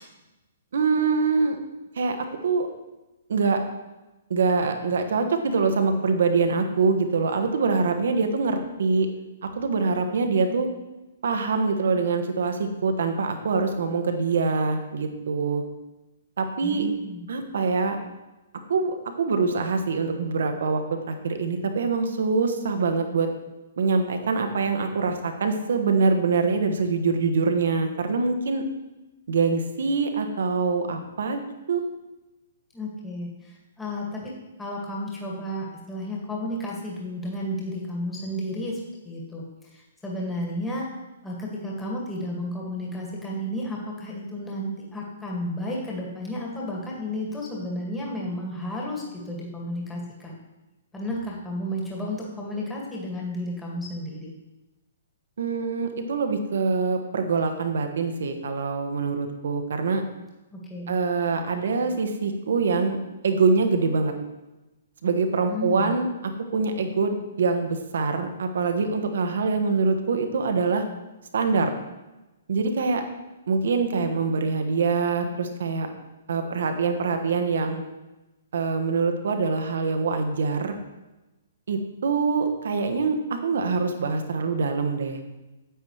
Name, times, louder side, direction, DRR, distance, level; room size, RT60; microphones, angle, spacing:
voice 1, 0.7-1.6 1.9-2.2 2.4-2.7 3.3-3.6 4.3-9.1 9.4-10.7 11.2-15.6 16.4-16.9 17.3-18.0 18.7-23.3 23.8-28.6 29.3-31.8 55.4-60.0 60.9-63.0 63.2-64.1 65.0-70.8 71.3-71.7 72.5-73.0 73.5-75.9 76.3-77.8 78.5-80.8 81.7-85.2, right 4 dB, 60° right, 6 dB, 1.2 m, -24 dB
voice 2, 16.6-17.2 32.7-34.3 34.6-38.8 39.0-39.4 39.7-40.9 41.2-50.3 50.9-54.3 60.5-61.0 65.5-65.9, left 1 dB, 10° left, -4 dB, 2.0 m, -32 dB
9.2 x 8.9 x 3.2 m, 1.1 s
figure-of-eight pair, 120°, 0 cm